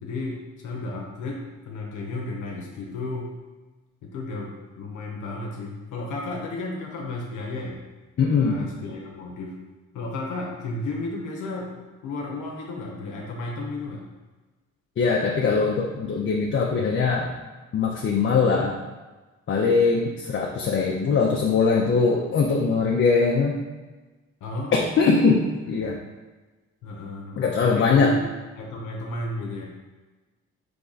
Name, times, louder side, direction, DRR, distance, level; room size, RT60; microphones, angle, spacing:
voice 1, 0.0-3.3 4.0-4.5 4.8-7.8 8.4-9.6 9.9-11.7 12.0-14.1 24.4-25.0 26.8-28.2 28.5-29.7, left 2 dB, 80° left, -1 dB, 0.8 m, -33 dB
voice 2, 8.2-8.6 15.0-17.3 17.7-18.7 19.5-23.6 24.7-26.0 27.4-28.2, left 4 dB, 40° left, -1 dB, 0.6 m, -21 dB
3.6 x 3.4 x 4.0 m, 1.2 s
cardioid pair, 90°, 30 cm